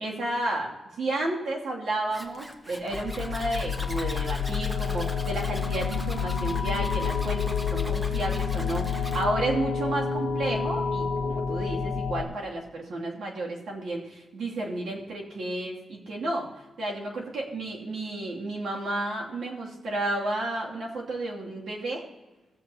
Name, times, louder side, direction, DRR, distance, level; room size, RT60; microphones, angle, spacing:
voice 1, 0.0-22.0, right 2 dB, 75° right, -3 dB, 2.6 m, -32 dB
Zipper (clothing), 2.1-9.2, equal, 10° right, 1.2 m, -41 dB
sound 1, 2.9-12.2, left 6 dB, 45° left, 1.4 m, -29 dB
17.0 x 7.7 x 2.9 m, 1.1 s
wide cardioid pair, 120°, 0 cm